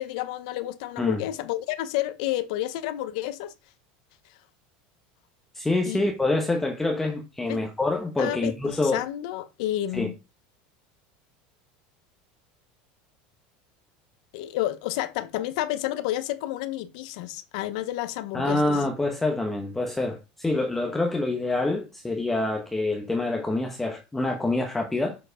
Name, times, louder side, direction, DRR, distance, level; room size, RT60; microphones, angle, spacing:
voice 1, 0.0-3.5 5.8-6.0 7.5-7.6 8.2-10.1 14.3-18.8, left 14 dB, 65° left, 0.9 m, -30 dB
voice 2, 5.5-9.0 9.9-10.1 18.3-25.2, left 2 dB, 5° left, 0.9 m, -26 dB
6.8 x 4.7 x 5.0 m
supercardioid pair, 165°, 4 cm